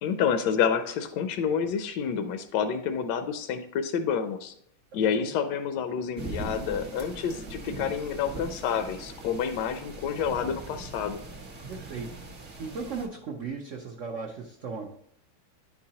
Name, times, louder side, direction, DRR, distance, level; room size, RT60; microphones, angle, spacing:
voice 1, 0.0-4.5 4.9-11.2, left 7 dB, 75° left, 8 dB, 1.0 m, -28 dB
sound 1, 6.2-13.1, right 2 dB, 40° right, 0.9 m, -40 dB
voice 2, 11.7-12.1 12.6-14.9, right 5 dB, 80° right, 1 dB, 0.6 m, -36 dB
10.0 x 4.7 x 2.8 m, 0.68 s
omnidirectional pair, 2.2 m